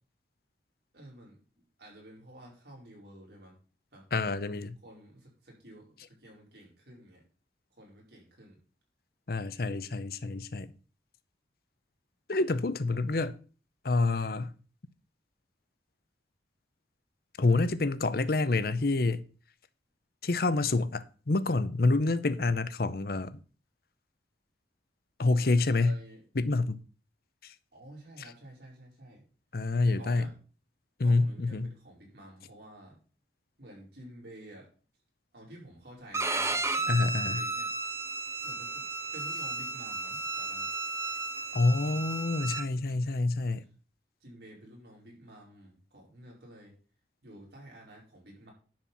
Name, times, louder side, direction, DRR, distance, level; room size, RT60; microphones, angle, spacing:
voice 1, 0.9-1.4 1.8-3.6 3.9-4.0 4.8-7.2 7.7-8.6 25.2-26.2 27.7-29.2 29.8-30.4 31.0-33.0 33.6-34.7 35.3-37.7 38.4-40.7 44.2-46.7 47.2-48.5, right 1 dB, 65° right, 4.7 m, -51 dB
voice 2, 4.1-4.8 9.3-10.7 12.3-13.4 13.8-14.5 17.4-19.2 20.2-23.3 25.2-26.0 26.4-26.8 27.4-27.5 29.5-30.3 31.0-31.7 36.9-37.4 41.5-43.6, left 3 dB, 55° left, 0.7 m, -27 dB
Bowed string instrument, 36.1-42.6, right 3 dB, 15° right, 0.7 m, -33 dB
10.5 x 4.4 x 7.0 m
head